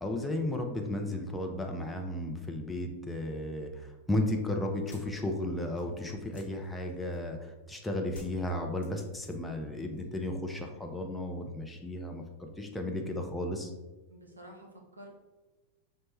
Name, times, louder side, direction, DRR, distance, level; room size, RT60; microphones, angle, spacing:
voice 1, 0.0-13.7, left 1 dB, 5° left, 1 dB, 0.4 m, -34 dB
sound 1, 4.7-7.4 8.1-9.6 9.9-10.5, right 1 dB, 70° left, 1.0 m, -53 dB
voice 2, 14.1-15.1, right 1 dB, 80° right, 1 dB, 0.7 m, -50 dB
5.2 x 2.1 x 3.0 m, 1.2 s
figure-of-eight pair, 90°, 0 cm